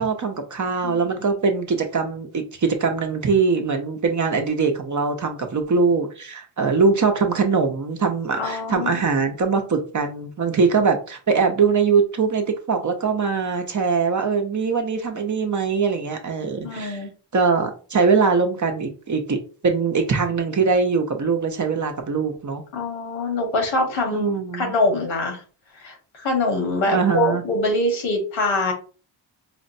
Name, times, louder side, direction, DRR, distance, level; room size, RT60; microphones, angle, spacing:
voice 1, 0.0-17.0 17.3-19.4 19.6-22.6 24.1-24.8 26.9-27.4, right 5 dB, 40° right, 4 dB, 0.7 m, -22 dB
voice 2, 0.8-1.1 8.3-8.9 16.6-17.1 22.7-25.4 25.7-28.7, left 2 dB, 80° left, 2 dB, 1.4 m, -24 dB
5.0 x 2.1 x 2.6 m, 0.37 s
cardioid pair, 80°, 47 cm